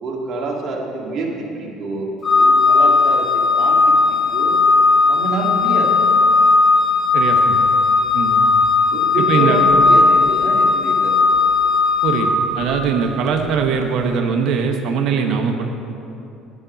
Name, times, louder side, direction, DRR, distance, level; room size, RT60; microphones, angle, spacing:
voice 1, 0.0-2.1 2.4-4.6 5.1-6.0 8.9-11.2, right 3 dB, 50° right, -2 dB, 1.8 m, -26 dB
Organ, 2.2-13.0, left 3 dB, 30° left, 0.7 m, -16 dB
voice 2, 7.1-7.7 8.1-8.5 9.3-9.6 12.0-12.3 12.5-15.7, right 6 dB, 65° right, 4 dB, 0.9 m, -21 dB
8.7 x 5.1 x 6.9 m, 2.8 s
supercardioid pair, 90°, 0 cm